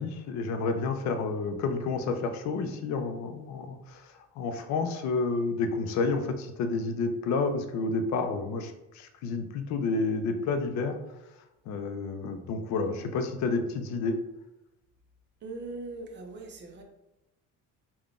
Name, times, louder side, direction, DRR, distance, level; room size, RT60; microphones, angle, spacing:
voice 1, 0.0-11.0 11.7-14.2, left 4 dB, 60° left, 7 dB, 0.5 m, -30 dB
voice 2, 15.4-16.8, right 3 dB, 35° right, 2 dB, 0.6 m, -40 dB
3.7 x 2.2 x 3.6 m, 0.91 s
cardioid pair, 160°, 32 cm